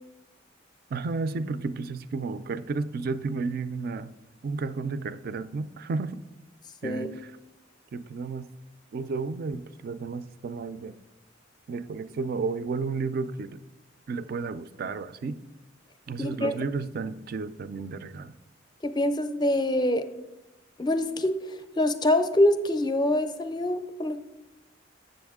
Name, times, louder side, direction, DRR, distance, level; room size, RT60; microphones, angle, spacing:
voice 1, 0.9-4.1 4.4-6.2 6.8-7.3 7.9-8.5 8.9-10.9 11.7-13.6 14.1-15.4 16.1-18.3, right 4 dB, 50° right, 14 dB, 0.3 m, -32 dB
voice 2, 16.2-16.6 18.8-20.0 20.8-24.2, left 1 dB, 20° left, 9 dB, 0.4 m, -25 dB
7.8 x 6.8 x 3.6 m, 1.0 s
head